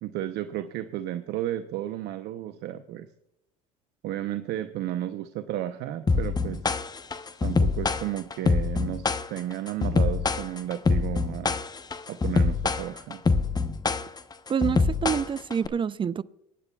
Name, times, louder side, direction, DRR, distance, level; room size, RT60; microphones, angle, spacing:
voice 1, 0.0-3.1 4.0-6.6 7.4-11.6 12.1-13.2, right 12 dB, 60° right, 0.7 m, -33 dB
sound 1, 6.1-15.7, left 4 dB, 20° left, 0.9 m, -25 dB
voice 2, 14.5-16.2, right 7 dB, 25° right, 0.5 m, -27 dB
23.5 x 10.0 x 2.3 m
hypercardioid pair, 75°, 19 cm